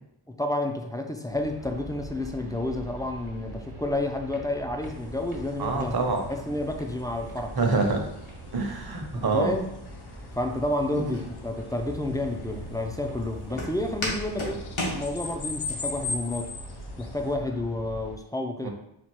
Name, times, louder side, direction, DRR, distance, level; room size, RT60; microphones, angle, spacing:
voice 1, 0.4-6.0 6.3-7.6 9.3-9.7 10.3-16.5 17.0-18.7, left 1 dB, 10° left, 4 dB, 0.4 m, -30 dB
sound 1, 1.3-18.2, right 2 dB, 75° right, 1.1 m, -43 dB
sound 2, 4.8-17.4, left 4 dB, 55° left, 0.6 m, -41 dB
voice 2, 5.6-6.2 7.6-8.1 8.5-9.5 10.9-11.3 18.6-18.7, right 3 dB, 50° right, 2 dB, 0.9 m, -26 dB
Walk footsteps, 11.1-15.7, left 1 dB, 70° left, 1.2 m, -35 dB
4.3 x 2.3 x 4.5 m, 0.79 s
wide cardioid pair, 45°, 49 cm